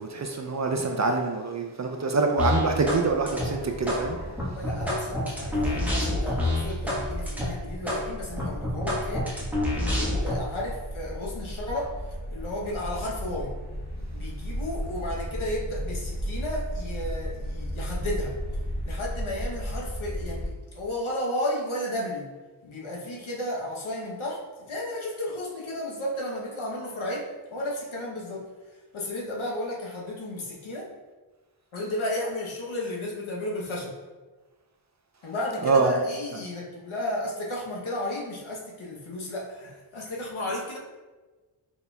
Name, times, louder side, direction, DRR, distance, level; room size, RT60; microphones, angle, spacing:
voice 1, 0.0-4.2 35.6-36.0, right 3 dB, 40° right, 3 dB, 0.4 m, -25 dB
sound 1, 2.4-3.0 3.3-4.0 4.4-7.0 7.3-7.5 7.9-8.0 8.4-10.4, left 1 dB, 5° right, 1.2 m, -27 dB
sound 2, 2.7-20.5, equal, 50° left, 1.2 m, -35 dB
voice 2, 4.5-12.0 12.3-13.5 14.1-18.4 18.8-22.3 22.6-28.4 28.9-30.9 31.7-33.9 35.2-40.8, left 1 dB, 75° left, -2 dB, 0.9 m, -33 dB
4.0 x 3.9 x 2.3 m, 1.3 s
wide cardioid pair, 60°, 49 cm